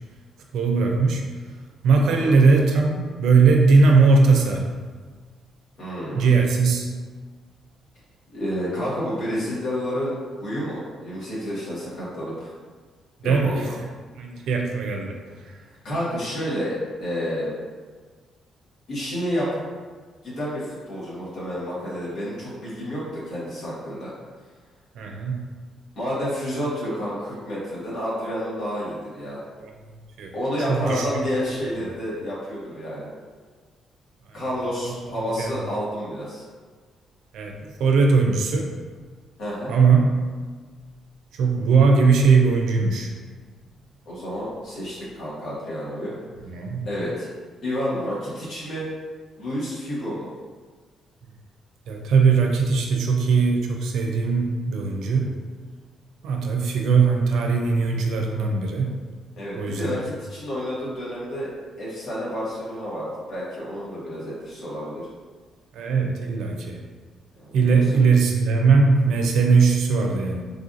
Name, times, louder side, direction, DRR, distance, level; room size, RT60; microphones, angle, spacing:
voice 1, 0.5-1.3 1.8-4.7 6.2-6.9 13.2-13.7 14.2-15.2 25.0-25.4 29.6-29.7 30.2-30.3 30.7-31.3 34.9-35.5 37.3-38.7 39.7-40.1 41.3-43.1 46.4-46.9 51.9-55.3 56.2-59.0 59.6-60.0 65.7-66.8 67.5-70.5, right 4 dB, 80° right, 2 dB, 0.4 m, -19 dB
voice 2, 2.0-2.5 5.8-6.3 8.3-10.1 10.4-12.5 13.2-13.7 15.8-16.7 17.0-17.5 18.9-19.6 20.2-24.1 25.9-29.4 30.3-33.1 34.3-36.4 39.4-39.7 44.0-46.2 46.8-47.3 47.6-48.9 49.4-50.3 59.3-61.5 61.8-65.0 67.3-67.7, equal, 70° left, -8 dB, 1.3 m, -30 dB
3.3 x 2.5 x 2.5 m, 1.5 s
cardioid pair, 90°, 0 cm